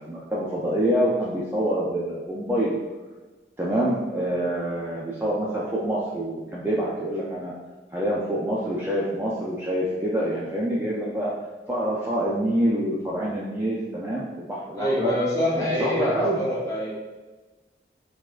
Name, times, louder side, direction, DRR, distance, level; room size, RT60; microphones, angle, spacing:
voice 1, 0.0-2.8 3.6-7.5 7.9-11.3 11.7-15.1 15.5-16.4, right 1 dB, 10° right, -6 dB, 0.3 m, -26 dB
voice 2, 14.8-17.0, left 1 dB, 20° left, -7 dB, 0.8 m, -25 dB
4.5 x 2.1 x 2.3 m, 1.2 s
head